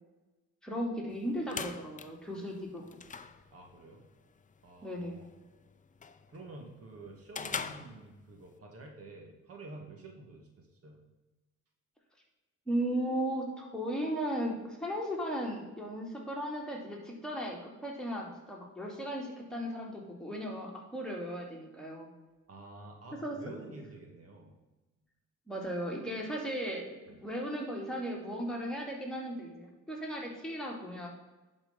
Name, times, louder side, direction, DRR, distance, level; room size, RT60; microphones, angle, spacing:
voice 1, 0.6-2.8 4.8-5.2 12.7-22.1 23.2-23.4 25.5-31.1, equal, ahead, -2 dB, 2.5 m, -36 dB
sound 1, 1.1-8.6, left 5 dB, 25° left, 0.6 m, -45 dB
voice 2, 3.5-4.1 4.6-5.3 6.3-11.0 22.5-24.6 27.1-27.2, right 2 dB, 50° right, 2 dB, 1.7 m, -49 dB
10.5 x 4.5 x 5.2 m, 1.1 s
cardioid pair, 90°, 30 cm